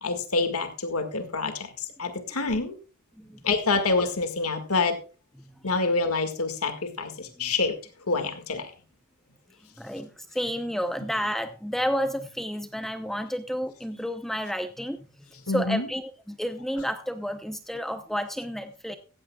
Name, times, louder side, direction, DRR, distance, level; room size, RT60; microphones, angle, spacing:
voice 1, 0.0-2.7 3.4-5.0 5.6-7.7 8.1-8.7 15.5-15.9, left 3 dB, 85° left, 7 dB, 1.9 m, -27 dB
voice 2, 5.4-5.8 7.4-7.5 9.6-19.0, equal, ahead, 8 dB, 0.7 m, -31 dB
15.5 x 15.0 x 2.3 m, 0.34 s
head